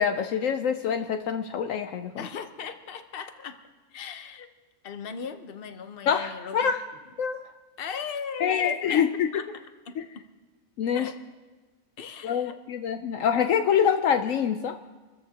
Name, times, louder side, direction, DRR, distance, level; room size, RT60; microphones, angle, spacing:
voice 1, 0.0-2.2 6.1-6.8 7.2-7.4 8.4-9.3 10.0-10.1 10.8-11.1 12.2-14.8, left 7 dB, 70° left, 7 dB, 1.0 m, -25 dB
voice 2, 2.2-3.6 3.9-4.5 4.8-6.7 7.8-9.0 9.3-10.0 10.9-11.2 12.0-12.6, left 6 dB, 45° left, 8 dB, 1.0 m, -37 dB
27.0 x 14.0 x 2.9 m, 1.3 s
omnidirectional pair, 1.5 m